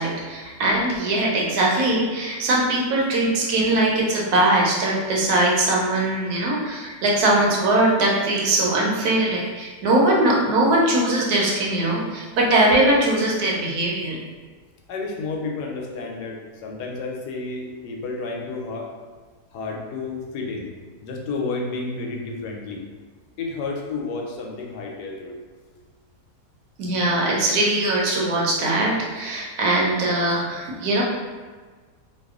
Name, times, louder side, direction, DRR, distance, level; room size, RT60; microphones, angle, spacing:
voice 1, 0.0-14.2 26.8-31.0, right 1 dB, 70° right, -3 dB, 1.2 m, -21 dB
voice 2, 14.9-18.9 19.5-20.7 21.0-22.8 23.4-25.3, left 3 dB, 80° left, 0 dB, 1.1 m, -31 dB
2.8 x 2.3 x 3.5 m, 1.4 s
omnidirectional pair, 1.7 m